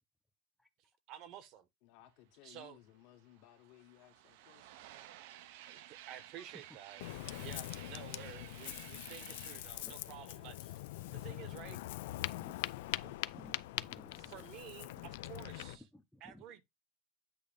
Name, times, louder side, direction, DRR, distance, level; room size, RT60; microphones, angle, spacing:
voice 1, 1.1-1.7 2.4-2.8 5.7-7.0 7.3-10.8 11.1-11.8 13.0-13.1 14.1-15.9 16.2-16.6, right 10 dB, 50° right, 1.0 m, -52 dB
voice 2, 1.8-4.8, left 14 dB, 65° left, 1.5 m, -61 dB
sound 1, 2.6-2.7 3.0-11.6, right 12 dB, 75° right, 0.7 m, -55 dB
Ocean, 7.0-15.8, left 17 dB, 90° left, 0.4 m, -43 dB
voice 3, 13.3-14.3 15.0-15.1 15.9-16.4, left 1 dB, ahead, 0.6 m, -57 dB
8.4 x 2.8 x 5.1 m
cardioid pair, 155°, 0 cm